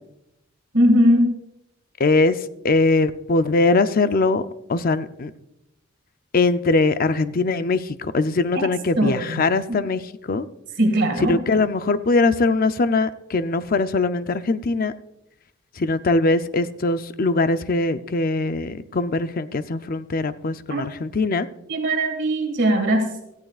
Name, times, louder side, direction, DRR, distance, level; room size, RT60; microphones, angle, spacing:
voice 1, 0.7-1.3 9.0-9.4 9.7-9.8 10.8-11.4 20.7-20.8 21.7-23.2, equal, 55° right, 4 dB, 2.1 m, -19 dB
voice 2, 2.0-2.4 2.6-4.4 4.7-5.3 6.3-10.5 11.2-14.9 15.8-21.5, left 3 dB, 45° left, 12 dB, 0.5 m, -21 dB
18.0 x 13.5 x 2.4 m, 0.86 s
head